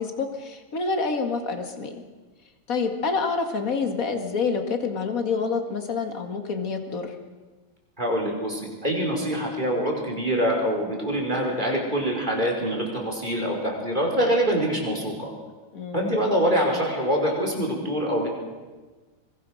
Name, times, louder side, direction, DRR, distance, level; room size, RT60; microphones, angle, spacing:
voice 1, 0.0-2.0 2.7-7.1 15.7-16.2, left 4 dB, 40° left, 5 dB, 1.1 m, -27 dB
voice 2, 8.0-15.3 15.9-18.3, equal, 10° right, 0 dB, 4.6 m, -25 dB
25.0 x 23.5 x 6.5 m, 1.3 s
omnidirectional pair, 4.5 m